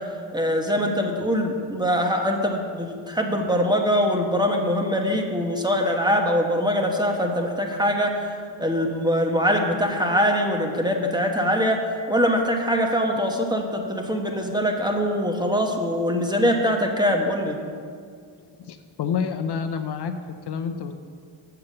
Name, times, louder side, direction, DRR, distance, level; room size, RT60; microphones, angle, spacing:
voice 1, 0.3-8.1 8.6-11.8 12.1-17.6, equal, 10° right, 2 dB, 1.1 m, -23 dB
voice 2, 18.4-20.9, left 6 dB, 55° left, 8 dB, 0.6 m, -29 dB
7.0 x 6.8 x 7.7 m, 2.2 s
cardioid pair, 95°, 48 cm